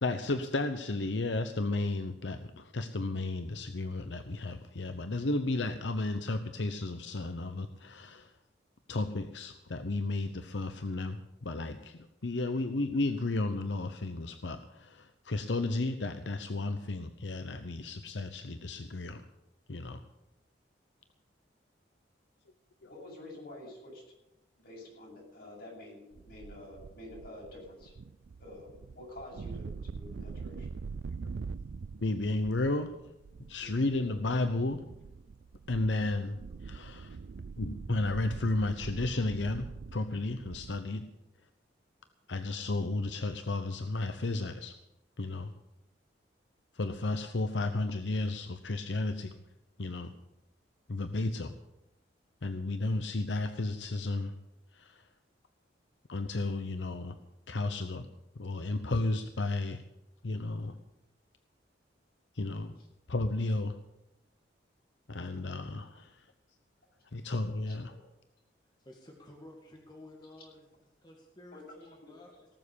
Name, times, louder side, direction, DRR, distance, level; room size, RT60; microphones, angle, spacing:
voice 1, 0.0-8.3 8.9-19.2 19.7-20.0 32.0-32.9 33.5-34.8 35.7-37.2 37.6-41.0 42.3-44.7 45.2-45.5 46.7-49.3 49.8-50.1 50.9-51.5 52.4-54.3 54.7-55.0 56.1-57.1 57.5-58.1 58.4-59.8 60.2-60.7 62.3-62.7 63.1-63.8 65.1-66.2 67.1-67.9, left 2 dB, 90° left, 9 dB, 0.9 m, -33 dB
voice 2, 22.8-24.0 24.6-27.9 28.4-30.7 33.6-34.1 67.7-67.8 71.5-72.1, left 1 dB, 60° left, -2 dB, 7.7 m, -48 dB
sound 1, 26.1-40.8, right 5 dB, 75° right, 0.4 m, -44 dB
voice 3, 68.8-70.7 71.0-72.6, left 1 dB, 25° left, 0 dB, 2.1 m, -53 dB
18.5 x 7.4 x 8.5 m, 0.90 s
head